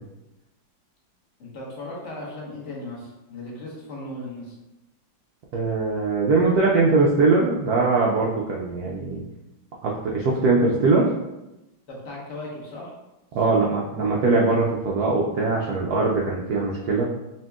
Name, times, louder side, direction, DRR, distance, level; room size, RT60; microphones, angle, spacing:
voice 1, 1.4-4.6 11.9-12.9 13.4-13.7, left 1 dB, 45° left, -5 dB, 1.2 m, -37 dB
voice 2, 5.5-9.2 9.8-11.1 13.3-17.1, right 3 dB, 90° right, -3 dB, 0.8 m, -21 dB
5.4 x 2.9 x 2.3 m, 0.96 s
omnidirectional pair, 2.2 m